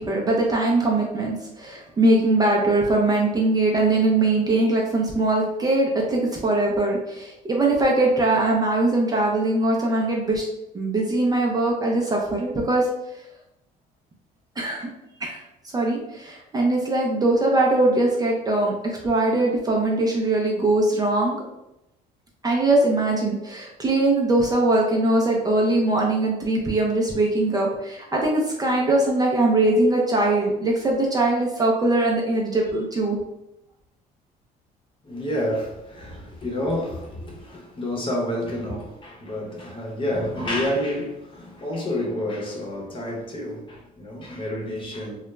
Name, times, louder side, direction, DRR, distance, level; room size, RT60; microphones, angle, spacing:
voice 1, 0.0-10.5 10.7-12.9 14.6-14.9 15.2-15.4 15.7-21.4 22.4-33.2, right 2 dB, 25° right, 0.5 m, -21 dB
voice 2, 35.0-45.2, left 1 dB, 30° left, 0.8 m, -29 dB
2.3 x 2.1 x 3.0 m
cardioid pair, 110°, 17 cm